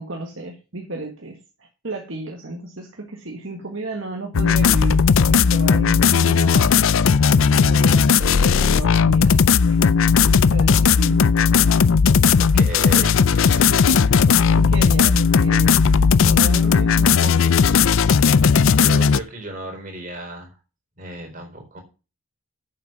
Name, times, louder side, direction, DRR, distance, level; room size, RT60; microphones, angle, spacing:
voice 1, 0.0-6.8 7.5-9.8 10.3-11.3 12.9-13.3 14.5-15.8 16.2-17.6, right 2 dB, 60° right, 1 dB, 1.8 m, -33 dB
sound 1, 4.3-19.2, left 6 dB, 65° left, 0.4 m, -16 dB
voice 2, 12.4-13.9 18.7-20.5 21.0-21.8, right 1 dB, 35° right, 2 dB, 4.3 m, -35 dB
8.5 x 7.5 x 5.9 m, 0.31 s
head